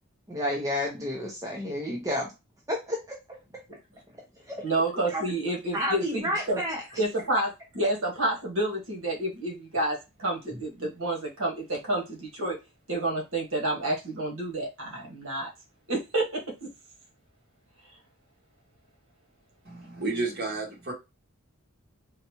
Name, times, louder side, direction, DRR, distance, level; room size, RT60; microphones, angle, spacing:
voice 1, 0.3-2.3 2.7-3.2 4.5-4.6 5.1-5.2 5.7-6.8, equal, 15° right, -1 dB, 0.6 m, -30 dB
voice 2, 4.6-6.6 7.0-12.6 12.9-15.5 15.9-16.4, right 1 dB, 70° right, -1 dB, 1.4 m, -29 dB
voice 3, 19.6-20.9, right 3 dB, 45° right, -1 dB, 1.5 m, -31 dB
4.0 x 2.2 x 2.9 m, 0.24 s
head